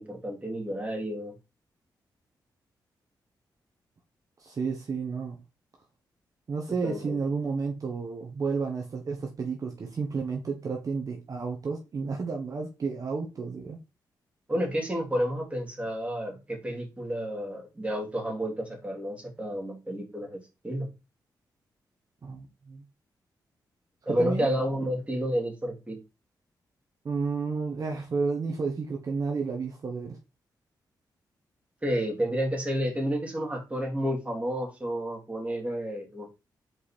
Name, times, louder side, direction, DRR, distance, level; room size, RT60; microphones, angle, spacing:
voice 1, 0.0-1.3 6.8-7.2 14.5-20.9 24.1-26.0 31.8-36.4, equal, 15° right, 2.9 m, -30 dB
voice 2, 4.4-5.4 6.5-13.8 22.2-22.8 24.1-24.5 27.0-30.2, right 4 dB, 50° right, 1.4 m, -31 dB
5.3 x 4.9 x 4.2 m
cardioid pair, 95°, 8 cm